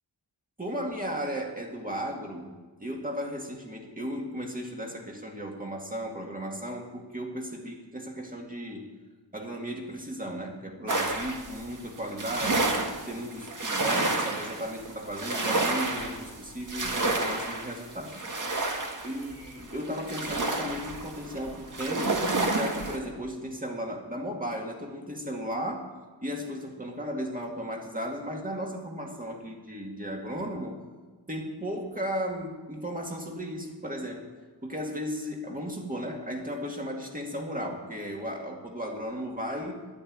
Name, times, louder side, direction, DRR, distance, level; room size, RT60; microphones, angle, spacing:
voice 1, 0.6-8.9 9.3-18.2 19.0-22.2 22.5-25.9 26.2-30.8 31.3-34.3 34.6-39.8, equal, 20° right, 1 dB, 2.1 m, -35 dB
sound 1, 10.9-23.0, right 2 dB, 40° right, 1.8 m, -30 dB
11.5 x 10.0 x 8.8 m, 1.4 s
wide cardioid pair, 120°, 45 cm